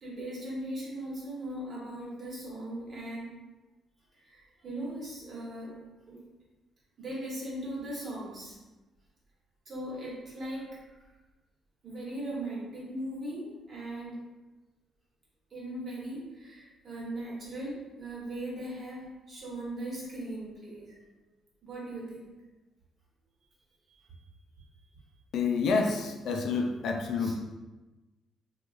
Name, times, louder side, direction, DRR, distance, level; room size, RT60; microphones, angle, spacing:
voice 1, 0.0-3.3 4.3-5.8 6.1-6.2 7.0-8.6 9.7-10.8 11.8-14.2 15.5-20.9 21.6-22.2 23.9-24.1 27.2-27.3, right 1 dB, 45° right, -6 dB, 1.3 m, -39 dB
voice 2, 25.3-27.3, left 4 dB, 70° left, 3 dB, 0.3 m, -28 dB
3.0 x 2.4 x 2.5 m, 1.1 s
cardioid pair, 90°, 0 cm